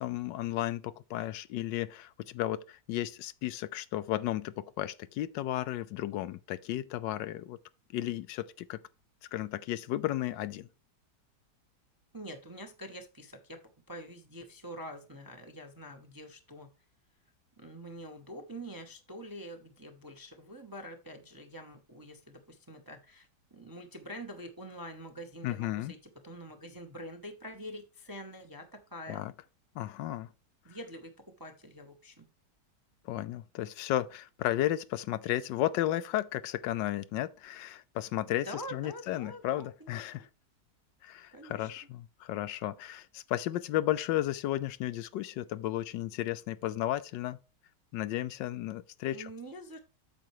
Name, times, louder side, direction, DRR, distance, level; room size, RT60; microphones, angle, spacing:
voice 1, 0.0-7.6 7.9-8.8 9.3-10.7 25.4-25.9 29.1-29.3 29.7-30.3 33.0-40.3 41.0-47.4 47.9-49.3, left 14 dB, 85° left, 1.3 m, -34 dB
voice 2, 12.1-13.6 13.9-16.7 17.6-26.0 26.2-29.3 30.6-31.1 31.4-32.3 38.2-40.0 41.3-41.7 49.1-49.8, equal, 20° right, 0.5 m, -45 dB
8.7 x 6.7 x 3.1 m
omnidirectional pair, 1.9 m